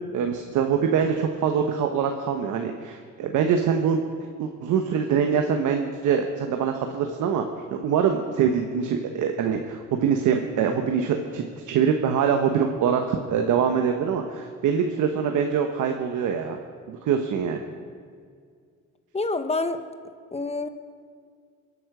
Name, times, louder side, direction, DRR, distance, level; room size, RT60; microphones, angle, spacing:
voice 1, 0.0-4.0 4.4-16.6 16.9-17.6, right 7 dB, 85° right, 4 dB, 1.2 m, -24 dB
voice 2, 19.1-19.8 20.3-20.7, left 3 dB, 20° left, 10 dB, 1.1 m, -27 dB
22.5 x 8.7 x 6.1 m, 2.1 s
cardioid pair, 90°, 30 cm